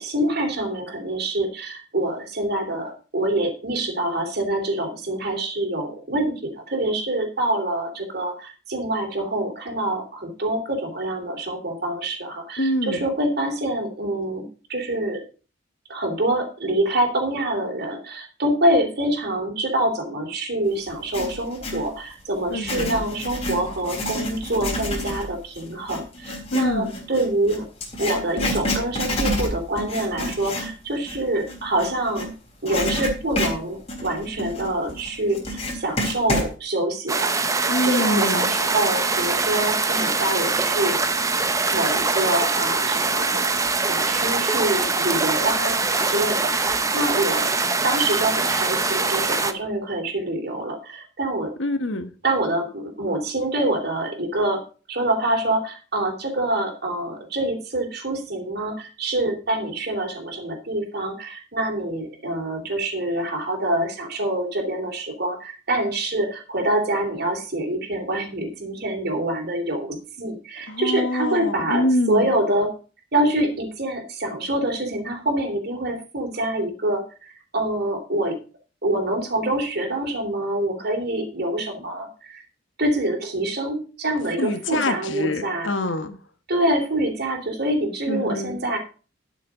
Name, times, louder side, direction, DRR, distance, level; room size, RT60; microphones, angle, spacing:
voice 1, 0.0-15.2 15.9-27.7 28.0-32.3 32.6-41.0 41.7-43.5 43.9-47.5 47.8-51.5 52.2-54.6 54.9-72.7 73.1-78.4 78.8-82.4 82.8-85.7 86.5-88.8, right 1 dB, 55° right, 3.2 m, -26 dB
voice 2, 12.6-13.0 22.5-23.0 26.5-27.0 37.7-38.5 51.6-52.1 70.7-72.4 84.4-86.2 88.1-88.6, left 1 dB, 65° left, 1.3 m, -25 dB
Writing, 20.9-21.9 22.5-32.3 32.6-36.5, left 1 dB, 35° left, 3.7 m, -29 dB
sound 1, 37.1-49.5, right 3 dB, 15° right, 0.8 m, -23 dB
12.0 x 6.5 x 5.0 m
head